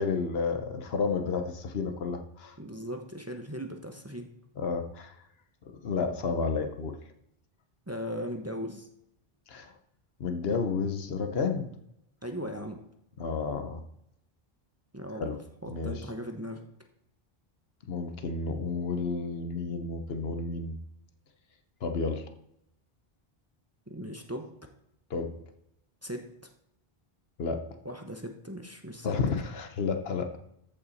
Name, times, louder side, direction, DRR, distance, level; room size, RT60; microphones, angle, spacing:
voice 1, 0.0-2.5 4.6-5.2 5.8-7.0 9.5-9.7 10.2-11.7 13.2-13.8 15.2-15.4 15.7-16.0 17.9-20.7 21.8-22.3 25.1-25.4 27.4-27.8 29.0-30.4, left 4 dB, 75° left, 7 dB, 1.1 m, -31 dB
voice 2, 2.6-4.3 7.9-8.9 12.2-12.8 14.9-15.3 15.6-16.6 23.9-24.5 26.0-26.3 27.8-29.3, equal, 15° right, 4 dB, 0.8 m, -38 dB
14.0 x 5.6 x 4.1 m, 0.79 s
omnidirectional pair, 1.0 m